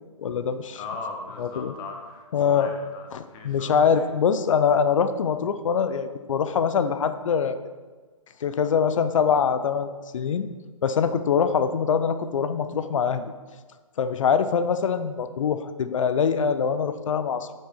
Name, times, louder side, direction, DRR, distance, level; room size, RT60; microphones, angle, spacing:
voice 1, 0.2-0.8 1.4-1.7 2.3-2.7 3.1-7.6 8.4-10.5 10.8-13.3 14.0-17.5, left 6 dB, 60° left, 11 dB, 0.6 m, -23 dB
voice 2, 0.7-4.1, left 4 dB, 20° left, 3 dB, 1.1 m, -39 dB
7.8 x 6.6 x 4.4 m, 1.4 s
hypercardioid pair, 140°, 18 cm